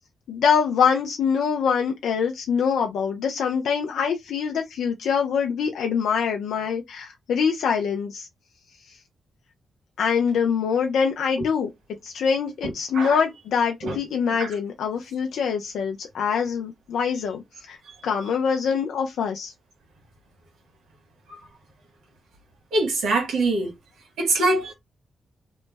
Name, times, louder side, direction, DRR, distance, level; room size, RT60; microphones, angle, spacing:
voice 1, 0.3-8.3 10.0-11.7 12.0-17.8 18.0-19.5, left 6 dB, 85° left, 0.5 m, -24 dB
voice 2, 12.6-13.2 13.8-14.0 14.4-14.5 21.3-21.4 22.7-23.7 24.2-24.7, right 2 dB, 85° right, 1.3 m, -24 dB
3.1 x 2.0 x 3.3 m
cardioid pair, 70°, 0 cm